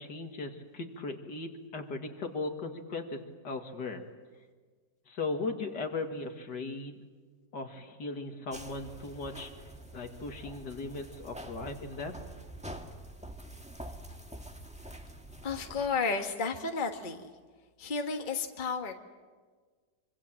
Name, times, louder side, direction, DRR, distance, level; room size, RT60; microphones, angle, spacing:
voice 1, 0.0-3.2 3.4-4.1 5.1-7.0 7.5-9.5 9.9-12.1, left 3 dB, 65° left, 5 dB, 2.5 m, -37 dB
sound 1, 8.5-15.9, right 1 dB, 5° right, 1.5 m, -46 dB
voice 2, 15.4-17.3 17.8-18.9, left 4 dB, 30° left, 5 dB, 1.5 m, -32 dB
25.5 x 25.5 x 7.5 m, 1.5 s
omnidirectional pair, 2.0 m